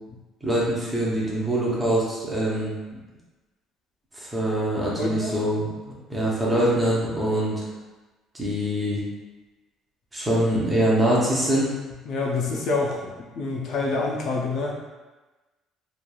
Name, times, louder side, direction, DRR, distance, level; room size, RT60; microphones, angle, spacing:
voice 1, 0.4-2.7 4.1-7.5 8.3-9.0 10.1-11.7, right 1 dB, 10° right, -6 dB, 0.6 m, -24 dB
voice 2, 5.0-5.4 12.1-13.1 13.4-14.8, left 3 dB, 50° left, -2 dB, 0.4 m, -26 dB
3.0 x 2.3 x 2.2 m, 1.2 s
cardioid pair, 165°, 0 cm